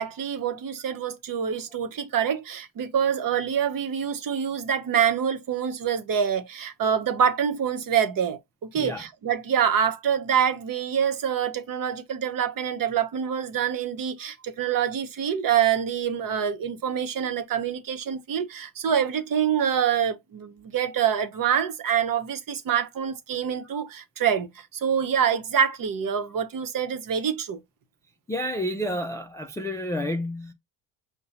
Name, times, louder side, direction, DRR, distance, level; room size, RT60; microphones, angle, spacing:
voice 1, 0.0-27.6, right 8 dB, 45° right, 0.9 m, -26 dB
voice 2, 28.3-30.5, equal, 5° left, 0.3 m, -30 dB
5.6 x 2.2 x 4.0 m
supercardioid pair, 95°, 48 cm